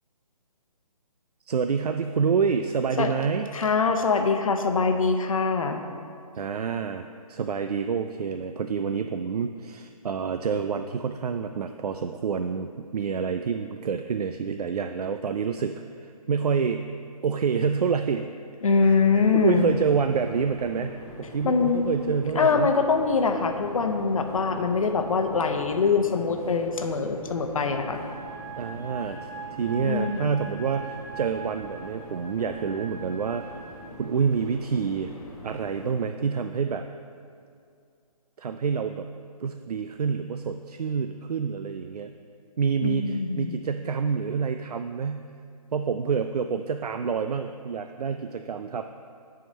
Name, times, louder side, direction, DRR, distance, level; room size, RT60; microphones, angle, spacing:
voice 1, 1.5-3.5 6.4-16.8 17.2-18.3 18.8-20.9 21.2-22.8 28.6-35.1 35.4-36.9 38.4-39.1 39.4-42.1 42.6-45.3 45.7-48.8, right 6 dB, 75° right, 8 dB, 0.4 m, -28 dB
voice 2, 3.5-5.8 18.6-19.7 21.4-22.0 22.4-28.0 29.8-30.2 42.8-43.5, left 5 dB, 60° left, 5 dB, 0.8 m, -23 dB
sound 1, 18.7-35.9, equal, 10° left, 2.0 m, -43 dB
sound 2, 27.6-33.7, right 6 dB, 15° right, 1.9 m, -41 dB
9.0 x 4.9 x 5.3 m, 2.4 s
figure-of-eight pair, 150°, 20 cm